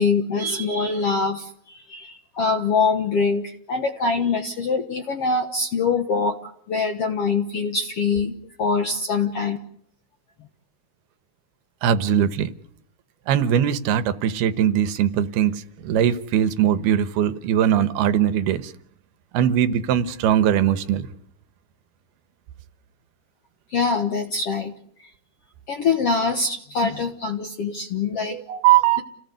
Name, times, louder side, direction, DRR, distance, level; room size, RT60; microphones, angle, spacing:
voice 1, 0.0-6.4 6.7-9.6 23.7-24.7 25.7-28.4, left 4 dB, 60° left, 6 dB, 1.6 m, -24 dB
voice 2, 11.8-12.5 13.3-18.7 19.3-21.1 28.3-29.0, right 10 dB, 80° right, 12 dB, 3.1 m, -20 dB
29.5 x 18.0 x 8.1 m, 0.70 s
omnidirectional pair, 4.5 m